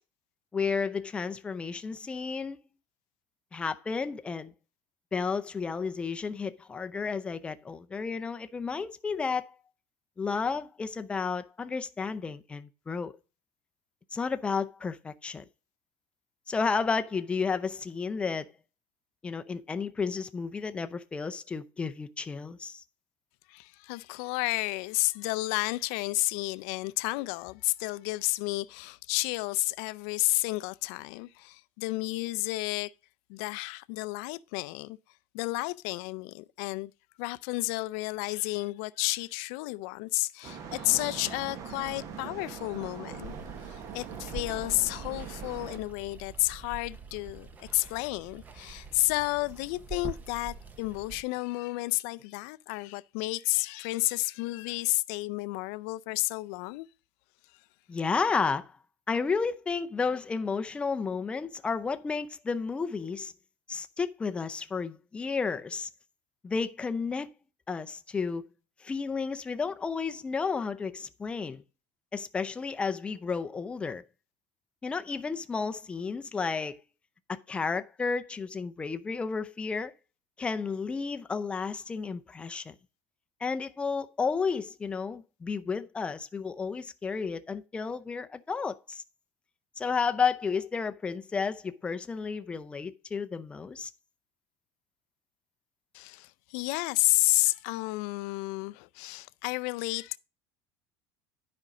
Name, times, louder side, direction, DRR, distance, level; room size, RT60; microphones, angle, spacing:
voice 1, 0.5-2.6 3.5-4.5 5.1-9.4 10.2-13.2 14.1-15.4 16.5-18.5 19.2-22.8 57.9-58.8 59.1-63.3 63.7-65.9 66.4-67.3 67.7-68.4 68.8-71.6 72.1-74.0 74.8-76.8 77.3-79.9 80.4-82.7 83.4-89.0 89.8-93.9, left 5 dB, 15° left, 0.5 m, -32 dB
voice 2, 23.5-32.9 33.3-35.0 35.3-36.9 37.2-43.3 43.7-56.9 95.9-100.2, left 22 dB, 75° left, 0.4 m, -31 dB
sound 1, 40.4-45.8, right 7 dB, 40° right, 1.2 m, -42 dB
Water, 43.2-51.2, right 5 dB, 20° right, 0.8 m, -44 dB
9.9 x 5.3 x 4.9 m
cardioid pair, 165°, 8 cm